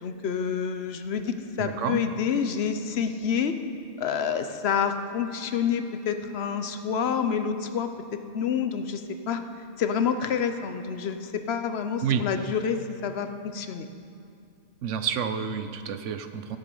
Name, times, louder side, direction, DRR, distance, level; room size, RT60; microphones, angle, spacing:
voice 1, 0.0-3.6 4.0-9.4 9.8-13.9, left 7 dB, 60° left, 8 dB, 0.9 m, -28 dB
voice 2, 1.6-2.0 12.0-12.2 14.8-16.6, right 8 dB, 75° right, 9 dB, 1.0 m, -29 dB
14.0 x 8.2 x 5.4 m, 2.5 s
omnidirectional pair, 1.3 m